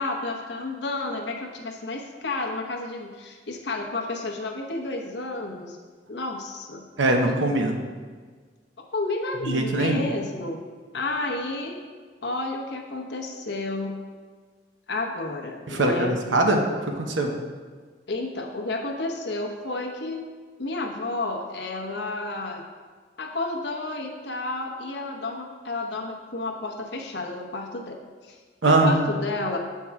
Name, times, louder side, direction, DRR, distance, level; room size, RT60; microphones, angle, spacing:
voice 1, 0.0-5.8 6.1-6.9 8.9-10.6 10.9-11.8 12.2-14.0 14.9-16.2 18.1-20.3 20.6-22.6 23.2-27.9 28.2-28.4 28.6-29.6, left 2 dB, 65° left, 2 dB, 0.9 m, -31 dB
voice 2, 7.0-7.7 9.4-10.0 15.7-17.3 28.6-29.0, right 2 dB, 80° right, 3 dB, 0.8 m, -22 dB
7.3 x 4.6 x 4.7 m, 1.5 s
head